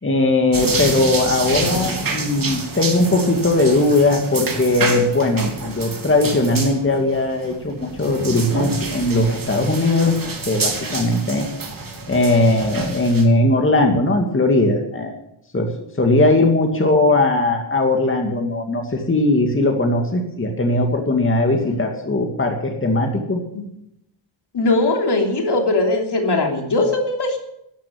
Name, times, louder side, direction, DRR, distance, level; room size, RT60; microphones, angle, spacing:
voice 1, 0.0-10.2 10.5-11.5 12.1-15.1 15.5-15.7 16.0-23.4, left 2 dB, 25° left, 2 dB, 2.4 m, -19 dB
sound 1, 0.5-13.2, right 3 dB, 45° right, 3.4 m, -28 dB
voice 2, 24.5-27.4, left 2 dB, 55° left, 2 dB, 3.2 m, -20 dB
13.5 x 10.5 x 8.8 m, 0.79 s
wide cardioid pair, 105°, 48 cm